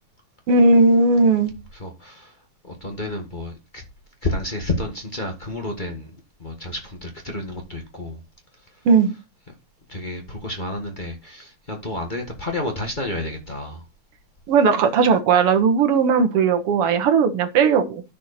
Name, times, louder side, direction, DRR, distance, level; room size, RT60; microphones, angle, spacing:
voice 1, 0.5-1.5 8.9-9.1 14.5-18.0, right 4 dB, 60° right, 2.0 m, -17 dB
voice 2, 1.7-2.3 2.6-3.8 4.2-6.1 6.4-8.2 9.9-13.8, left 2 dB, 30° left, 0.9 m, -30 dB
10.5 x 6.4 x 4.2 m
omnidirectional pair, 3.3 m